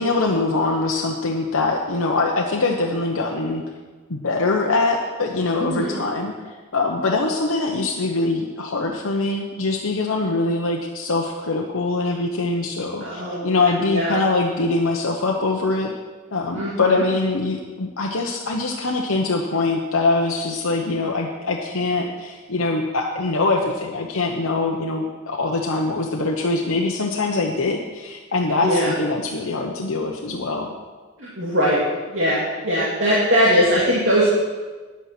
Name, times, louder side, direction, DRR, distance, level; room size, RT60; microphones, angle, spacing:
voice 1, 0.0-3.6 4.1-6.3 6.7-15.9 16.3-30.7, left 3 dB, 90° left, 0 dB, 1.0 m, -23 dB
voice 2, 5.6-6.0 13.0-14.2 16.5-17.1 28.6-28.9 31.2-31.8 32.1-34.3, equal, 65° right, -7 dB, 2.4 m, -21 dB
10.0 x 8.4 x 6.0 m, 1.3 s
head